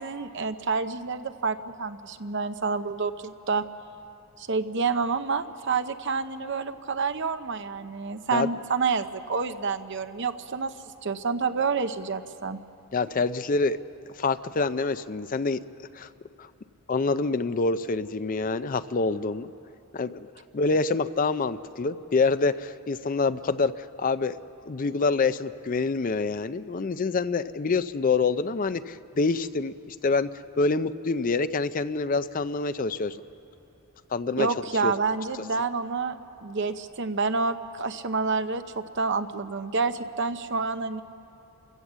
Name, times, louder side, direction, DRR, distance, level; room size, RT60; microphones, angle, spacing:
voice 1, 0.0-3.6 4.4-10.7 11.0-12.6 34.4-41.0, right 4 dB, 55° right, 10 dB, 0.8 m, -28 dB
voice 2, 12.9-13.8 14.1-15.6 15.9-16.1 16.4-16.5 16.9-19.5 19.9-20.3 20.5-24.4 24.7-30.3 30.6-33.2 34.1-34.5 34.8-34.9, left 4 dB, 40° left, 13 dB, 0.5 m, -26 dB
28.5 x 16.5 x 7.4 m, 2.9 s
head